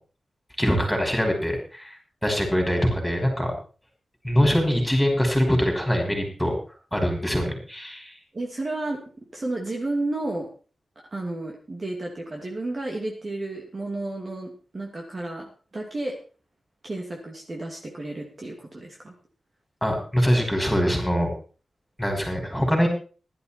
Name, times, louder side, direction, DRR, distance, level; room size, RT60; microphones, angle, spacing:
voice 1, 0.6-2.0 2.2-3.5 4.2-6.5 6.9-8.1 19.8-21.3 22.0-22.9, equal, 5° left, 3 dB, 5.5 m, -23 dB
voice 2, 8.3-10.5 11.1-16.2 16.8-19.1, right 2 dB, 35° right, 0 dB, 2.7 m, -32 dB
15.5 x 12.0 x 4.4 m, 0.37 s
wide cardioid pair, 120°, 0 cm